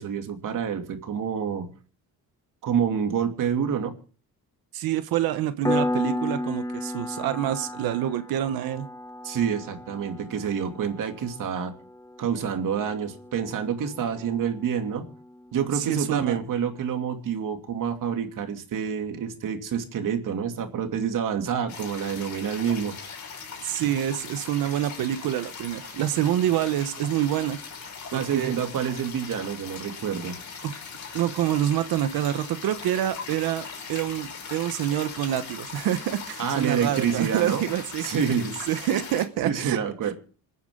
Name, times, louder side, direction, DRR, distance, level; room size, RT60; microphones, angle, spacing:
voice 1, 0.0-1.7 2.6-3.9 9.2-11.7 12.2-15.1 15.5-22.9 28.1-30.4 36.4-37.7 38.0-38.5 39.4-40.1, right 7 dB, 65° right, 5 dB, 2.7 m, -27 dB
voice 2, 4.7-8.9 15.7-16.4 23.6-27.6 28.1-28.6 30.6-30.8 31.1-38.0 38.7-39.8 40.0-40.1, right 12 dB, 85° right, 11 dB, 1.0 m, -27 dB
Piano, 5.7-16.0, left 1 dB, 10° left, 0.9 m, -34 dB
sound 1, 21.7-39.3, left 5 dB, 55° left, 5.0 m, -40 dB
27.0 x 9.4 x 3.8 m, 0.40 s
cardioid pair, 115°, 35 cm